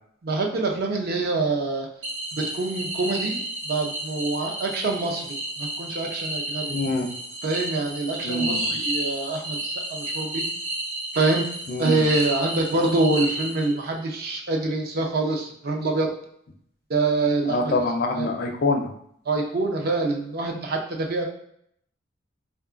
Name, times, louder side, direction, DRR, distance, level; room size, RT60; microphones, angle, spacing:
voice 1, 0.2-1.9 2.5-6.7 7.4-10.4 11.1-11.4 11.8-16.1 16.9-17.7 18.2-18.3 19.3-21.2, right 2 dB, 55° right, 1 dB, 0.5 m, -25 dB
sound 1, 2.0-14.0, right 1 dB, 85° right, 0.8 m, -31 dB
voice 2, 6.7-7.1 8.2-8.8 11.7-12.1 17.4-18.9, left 2 dB, 55° left, 3 dB, 0.4 m, -25 dB
3.6 x 2.2 x 2.4 m, 0.68 s
head